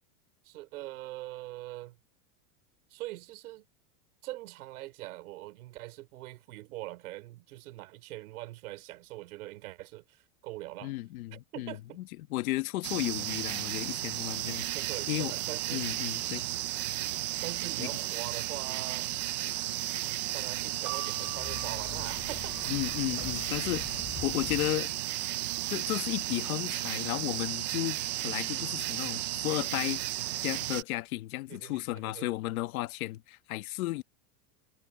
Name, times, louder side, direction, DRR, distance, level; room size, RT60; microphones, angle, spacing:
voice 1, 0.4-2.0 2.9-3.6 4.2-10.9 11.3-12.0 13.2-13.3 14.7-15.8 17.4-19.1 19.4-19.6 20.3-22.7 31.5-32.3, right 17 dB, 75° right, 4.9 m, -43 dB
voice 2, 10.8-11.7 12.3-14.7 15.1-15.3 15.7-16.4 17.8-17.9 22.7-24.9 25.7-30.0 30.4-34.0, left 18 dB, 70° left, 1.7 m, -34 dB
sound 1, 12.8-30.8, right 16 dB, 30° right, 0.4 m, -34 dB
sound 2, 20.3-25.3, left 15 dB, 30° left, 5.2 m, -45 dB
sound 3, 20.8-24.7 25.5-26.2, right 24 dB, 55° right, 6.2 m, -47 dB
supercardioid pair, 180°, 45 cm